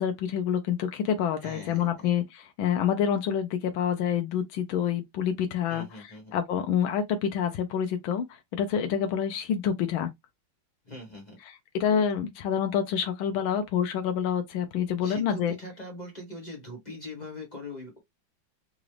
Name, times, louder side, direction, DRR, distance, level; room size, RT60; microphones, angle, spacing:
voice 1, 0.0-5.9 6.3-10.1 11.4-15.6, left 8 dB, 90° left, 1.5 m, -27 dB
voice 2, 1.4-2.1 5.7-6.3 10.8-11.4 15.0-18.0, left 1 dB, 25° left, 1.1 m, -42 dB
4.0 x 2.5 x 3.1 m
omnidirectional pair, 2.1 m